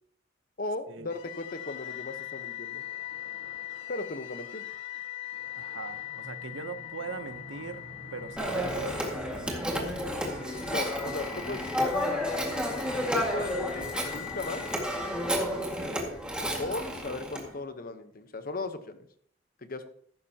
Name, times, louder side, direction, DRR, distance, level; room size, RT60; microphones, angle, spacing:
voice 1, 0.6-2.8 3.9-4.6 10.7-12.0 13.1-14.7 16.6-19.1 19.6-19.9, left 2 dB, 50° left, 1.1 m, -37 dB
sound 1, 1.1-16.2, left 11 dB, 70° left, 1.6 m, -42 dB
voice 2, 5.6-7.8 8.1-10.0 13.2-13.5 15.3-15.7, right 5 dB, 80° right, 0.9 m, -41 dB
Telephone, 8.4-17.4, equal, 5° right, 2.0 m, -31 dB
14.5 x 12.0 x 2.9 m
head